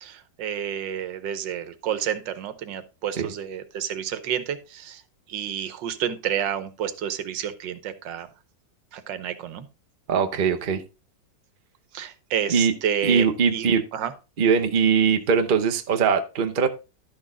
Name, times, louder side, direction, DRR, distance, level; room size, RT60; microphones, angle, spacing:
voice 1, 0.0-5.0 5.3-8.3 8.9-9.7 11.9-13.7 13.9-14.1, right 9 dB, 85° right, 12 dB, 1.6 m, -30 dB
voice 2, 10.1-10.8 12.5-12.7 13.0-13.8 14.4-16.7, right 6 dB, 40° right, 5 dB, 0.8 m, -21 dB
11.5 x 6.2 x 3.8 m, 0.30 s
omnidirectional pair, 1.9 m